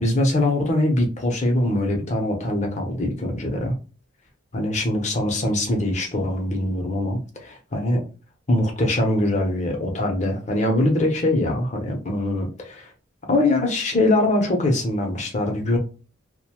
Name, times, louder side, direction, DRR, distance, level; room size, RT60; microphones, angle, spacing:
voice 1, 0.0-3.8 4.5-8.0 8.5-12.9 13.3-15.8, left 1 dB, 40° left, 2 dB, 0.7 m, -22 dB
2.6 x 2.2 x 2.9 m, 0.35 s
head